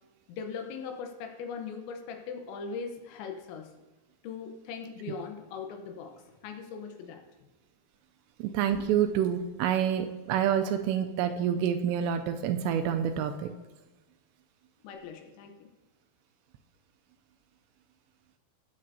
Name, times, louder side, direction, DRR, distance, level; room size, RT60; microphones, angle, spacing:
voice 1, 0.3-3.7 4.2-7.2 14.8-15.7, left 5 dB, 85° left, 4 dB, 3.3 m, -40 dB
voice 2, 8.4-13.5, right 9 dB, 85° right, 7 dB, 2.6 m, -27 dB
18.0 x 7.6 x 2.7 m, 1.1 s
omnidirectional pair, 5.2 m